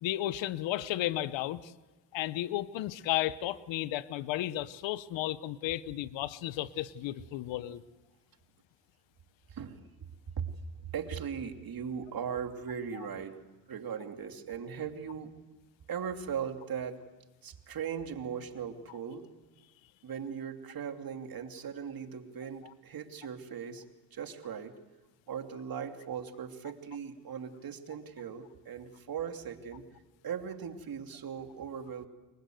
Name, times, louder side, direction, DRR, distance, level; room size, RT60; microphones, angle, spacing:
voice 1, 0.0-1.7 2.1-7.8 12.9-13.1, left 14 dB, 75° left, 16 dB, 1.1 m, -33 dB
voice 2, 9.5-9.8 10.4-10.5 10.8-13.4 13.7-15.3 15.9-17.0 17.4-19.3 20.0-23.8 24.1-24.8 25.3-29.9 30.2-32.1, right 7 dB, 50° right, 5 dB, 3.0 m, -39 dB
29.0 x 22.5 x 8.0 m, 1.1 s
supercardioid pair, 70°, 45 cm